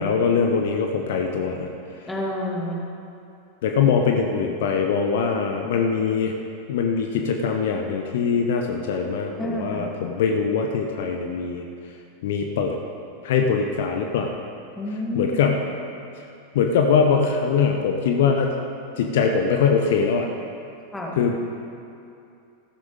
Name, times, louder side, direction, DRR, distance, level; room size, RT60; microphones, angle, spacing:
voice 1, 0.0-1.7 3.6-6.4 6.7-11.7 12.2-12.8 13.2-14.4 15.1-15.6 16.5-18.5 19.0-20.3 21.2-21.4, left 6 dB, 55° left, 3 dB, 0.8 m, -22 dB
voice 2, 2.1-2.9 9.4-9.9 14.8-15.5 20.9-21.2, left 1 dB, 5° left, -2 dB, 2.0 m, -29 dB
14.5 x 12.5 x 3.7 m, 2.6 s
figure-of-eight pair, 90°, 0 cm